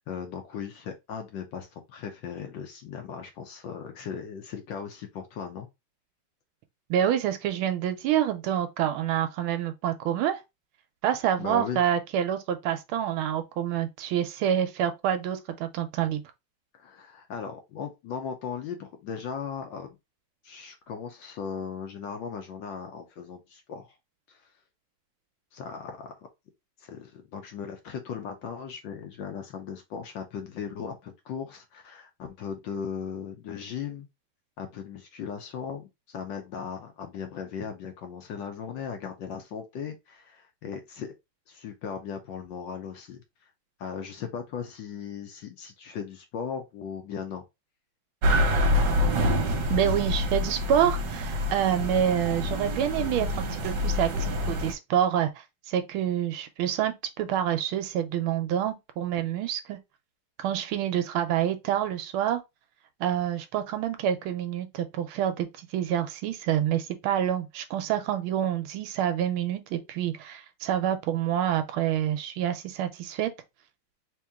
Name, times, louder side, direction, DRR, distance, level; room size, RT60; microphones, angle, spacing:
voice 1, 0.1-5.7 11.4-11.8 16.7-19.9 20.4-23.9 24.3-24.5 25.5-26.1 26.8-34.1 34.6-41.1 41.5-43.2 43.8-47.4, left 7 dB, 70° left, 1.2 m, -37 dB
voice 2, 6.9-10.4 11.0-16.2 49.7-59.8 60.4-62.4 63.0-73.3, right 10 dB, 80° right, 1.4 m, -27 dB
sound 1, 48.2-54.7, left 1 dB, 60° right, 1.4 m, -26 dB
3.5 x 2.9 x 3.5 m
omnidirectional pair, 2.4 m